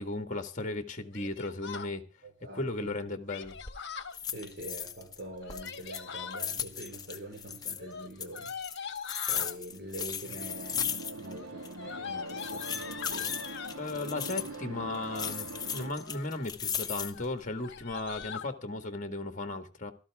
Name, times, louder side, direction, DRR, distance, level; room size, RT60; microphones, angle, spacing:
voice 1, 0.0-2.0 2.5-3.6 13.8-19.9, left 2 dB, 35° left, 1.7 m, -36 dB
Yell, 1.1-1.9 3.3-4.2 5.3-6.4 7.8-9.6 10.4-10.8 11.1-13.8 14.7-15.3 15.8-16.4 16.8-16.9 17.1-17.3 17.6-18.5, left 6 dB, 55° left, 1.4 m, -42 dB
voice 2, 2.2-3.1 4.3-8.5 9.3-13.4, right 1 dB, 50° right, 5.0 m, -44 dB
sound 1, 3.4-3.8 4.1-5.2 5.5-7.8 8.2-11.4 11.6-11.7 12.3-14.5 15.1-17.3 17.8-18.3, left 8 dB, 20° left, 1.1 m, -36 dB
sound 2, 10.2-15.9, right 2 dB, 75° right, 1.7 m, -43 dB
17.5 x 13.5 x 3.6 m
head